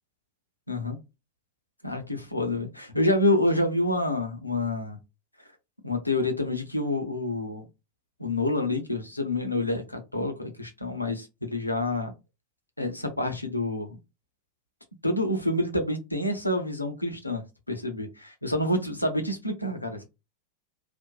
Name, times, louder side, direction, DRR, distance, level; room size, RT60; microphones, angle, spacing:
voice 1, 0.7-1.0 1.8-5.0 5.8-7.6 8.2-12.1 12.8-14.0 15.0-20.0, left 1 dB, 85° left, 0.6 m, -28 dB
2.6 x 2.1 x 2.3 m
figure-of-eight pair, 90°, 0 cm